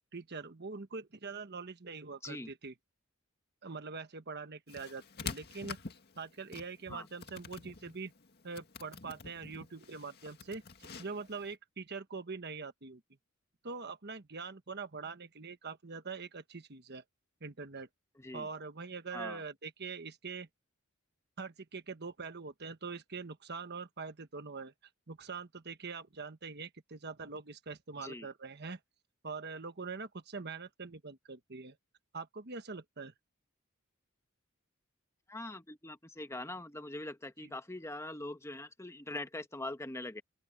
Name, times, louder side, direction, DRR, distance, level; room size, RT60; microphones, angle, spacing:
voice 1, 0.1-2.7 3.6-5.8 6.2-8.1 8.4-13.0 13.6-17.0 17.4-17.9 18.3-20.5 21.4-24.7 25.1-28.8 29.2-31.8 32.1-33.1 37.4-37.6, right 4 dB, 55° right, 1.3 m, -43 dB
sound 1, 4.7-11.5, left 5 dB, 50° left, 2.0 m, -47 dB
voice 2, 18.2-18.5 19.1-19.4 28.0-28.3 35.3-40.2, left 2 dB, 15° left, 1.2 m, -42 dB
open air
head